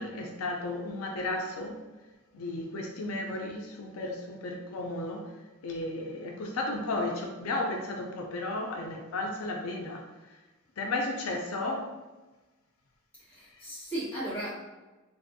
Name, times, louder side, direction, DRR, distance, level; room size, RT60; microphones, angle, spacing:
voice 1, 0.0-1.7 2.3-5.2 5.6-10.0 10.8-11.8, left 2 dB, 90° left, 1 dB, 0.5 m, -34 dB
voice 2, 13.2-14.5, right 1 dB, 10° left, -11 dB, 1.3 m, -36 dB
3.9 x 2.6 x 2.5 m, 1.2 s
head